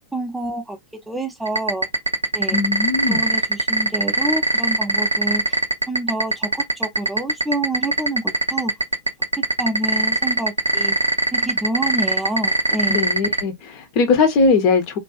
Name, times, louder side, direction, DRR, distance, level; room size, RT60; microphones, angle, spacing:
voice 1, 0.1-0.8 1.1-1.9 2.3-2.6 3.1-5.6 5.9-8.7 9.6-10.9 11.3-13.0, right 1 dB, 5° right, 0.4 m, -27 dB
sound 1, 1.5-13.4, right 2 dB, 80° right, 0.3 m, -19 dB
voice 2, 2.5-3.2 12.9-15.0, left 4 dB, 45° left, 0.6 m, -19 dB
2.5 x 2.3 x 2.3 m
figure-of-eight pair, 90°, 0 cm